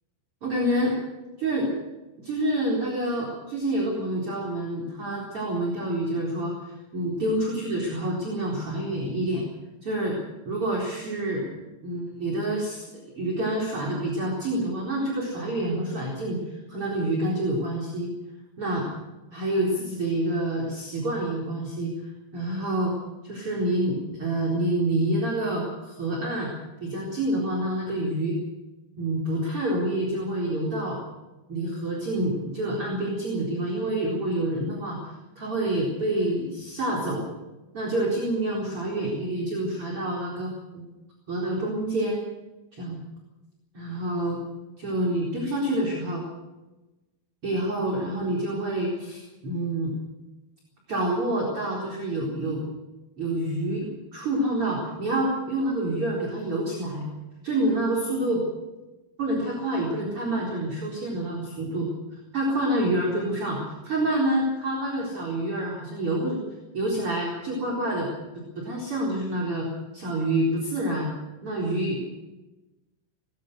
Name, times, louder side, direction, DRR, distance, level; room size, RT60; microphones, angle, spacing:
voice 1, 0.4-1.0 1.4-1.7 2.2-9.4 9.8-10.2 10.4-11.5 11.8-12.8 13.1-18.1 18.6-18.9 19.3-22.9 23.2-26.5 26.8-28.4 29.0-31.0 31.5-37.3 37.7-40.8 41.3-42.2 42.7-43.0 43.7-44.4 44.8-46.2 47.4-49.9 50.9-52.7 53.2-57.1 57.4-58.4 59.2-61.9 62.3-66.4 66.7-68.1 68.6-69.7 69.9-71.1 71.4-72.0, right 1 dB, 35° right, -3 dB, 4.9 m, -27 dB
21.0 x 19.5 x 6.8 m, 1.1 s
omnidirectional pair, 4.6 m